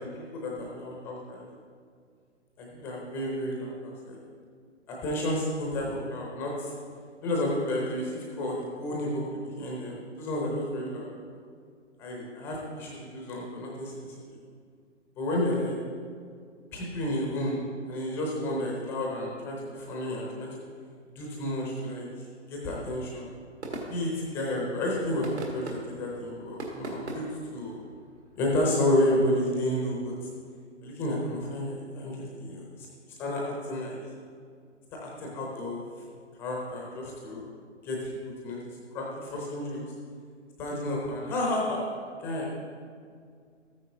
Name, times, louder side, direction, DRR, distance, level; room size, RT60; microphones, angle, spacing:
voice 1, 0.0-1.4 2.6-4.2 4.9-6.7 7.2-11.1 12.0-13.9 15.2-15.8 16.7-17.6 17.9-20.5 21.2-22.1 22.5-23.3 23.9-27.8 28.4-30.1 30.8-32.6 33.2-34.0 34.9-35.8 36.4-37.4 37.8-38.1 38.4-38.6 38.9-39.8 40.6-42.5, left 1 dB, 5° left, -2 dB, 0.6 m, -31 dB
sound 1, 23.4-28.6, right 2 dB, 65° right, 2.0 m, -41 dB
13.5 x 9.4 x 2.7 m, 2.1 s
figure-of-eight pair, 135°, 37 cm